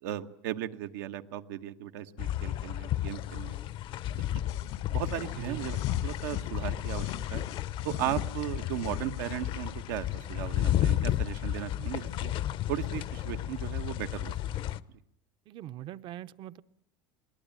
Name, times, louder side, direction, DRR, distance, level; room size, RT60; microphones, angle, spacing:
voice 1, 0.0-3.6 4.2-4.3 4.9-5.8 6.0-7.4 7.8-12.3 12.7-14.4, right 12 dB, 85° right, 7 dB, 1.2 m, -36 dB
sound 1, 2.2-14.8, left 12 dB, 50° left, 0.8 m, -32 dB
sound 2, 4.5-6.5 6.8-9.5, left 11 dB, 80° left, 1.9 m, -42 dB
voice 2, 15.5-16.6, right 13 dB, 50° right, 15 dB, 0.8 m, -41 dB
22.0 x 18.0 x 9.0 m, 0.76 s
supercardioid pair, 120°, 11 cm